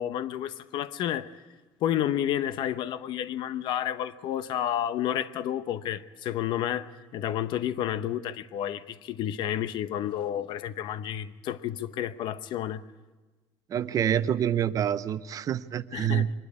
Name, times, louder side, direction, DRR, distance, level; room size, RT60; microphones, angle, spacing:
voice 1, 0.0-1.3 1.8-12.8 15.9-16.3, left 11 dB, 65° left, 0.8 m, -30 dB
voice 2, 13.7-16.3, right 10 dB, 40° right, 0.7 m, -27 dB
23.5 x 12.0 x 9.7 m
cardioid pair, 130°, 9 cm